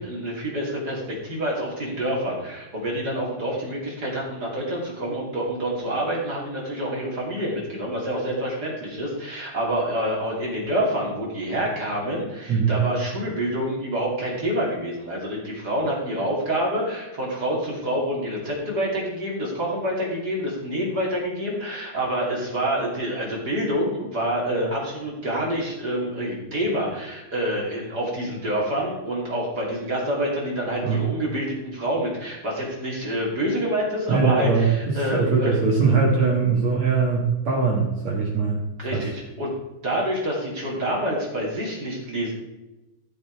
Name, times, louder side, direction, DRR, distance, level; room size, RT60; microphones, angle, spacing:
voice 1, 0.0-35.5 38.8-39.5 39.8-42.3, right 1 dB, 30° right, -4 dB, 2.1 m, -27 dB
voice 2, 12.5-12.8 30.8-31.0 34.1-38.6 38.9-39.0, right 5 dB, 60° right, -2 dB, 1.8 m, -21 dB
14.0 x 7.1 x 4.7 m, 1.0 s
omnidirectional pair, 5.6 m